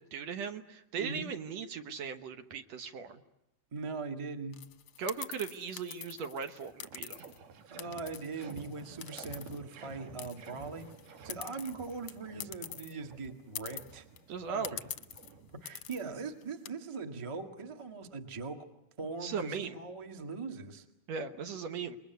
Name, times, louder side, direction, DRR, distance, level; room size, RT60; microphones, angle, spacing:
voice 1, 0.1-3.2 5.0-7.3 14.3-14.8 19.2-19.8 21.1-22.0, right 6 dB, 60° right, 8 dB, 2.2 m, -38 dB
voice 2, 1.0-1.3 3.7-4.6 7.7-10.9 11.2-14.1 14.5-14.8 15.5-18.7 19.0-20.8, right 4 dB, 15° right, 6 dB, 1.0 m, -41 dB
sound 1, 4.5-7.4 7.8-9.9 10.2-12.9 13.2-13.3 13.6-14.2 14.6-15.3 15.7-16.0 16.4-16.7, left 10 dB, 60° left, 1.5 m, -45 dB
sound 2, 6.2-6.3 6.5-15.9, right 4 dB, 80° right, 3.3 m, -52 dB
27.5 x 22.0 x 9.4 m, 0.84 s
omnidirectional pair, 3.7 m